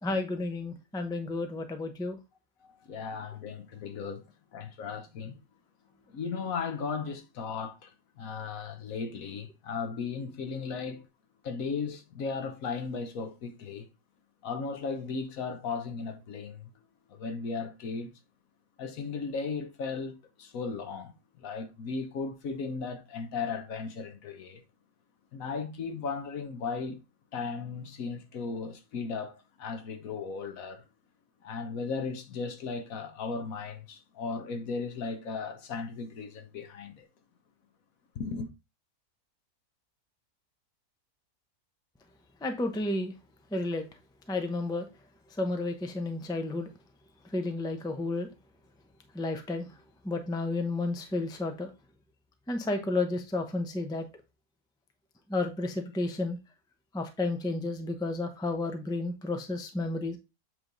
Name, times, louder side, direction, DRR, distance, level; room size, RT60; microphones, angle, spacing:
voice 1, 0.0-2.2 42.4-43.1 43.5-43.8 44.3-44.9 45.4-46.7 47.3-48.3 49.1-49.7 50.0-51.7 52.5-54.1 55.3-56.4 56.9-60.2, left 2 dB, 5° left, 0.5 m, -31 dB
voice 2, 2.6-4.2 4.5-5.4 6.1-7.9 8.2-11.1 11.4-13.9 14.4-16.7 17.1-18.1 18.8-20.1 20.4-24.6 25.3-27.0 27.3-30.8 31.4-37.1 38.1-38.5, left 5 dB, 65° left, 1.3 m, -36 dB
7.9 x 3.4 x 3.9 m
omnidirectional pair, 1.6 m